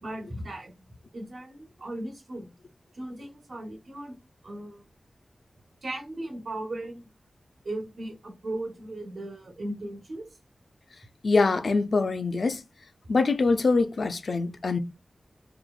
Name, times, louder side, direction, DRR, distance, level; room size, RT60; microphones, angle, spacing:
voice 1, 0.0-0.7 1.1-2.5 2.9-4.1 4.4-4.8 5.8-7.1 7.6-10.3, right 1 dB, 80° right, 1.2 m, -37 dB
voice 2, 11.2-12.6 13.1-14.8, left 3 dB, 70° left, 0.3 m, -24 dB
3.0 x 2.1 x 2.3 m
wide cardioid pair, 90°, 0 cm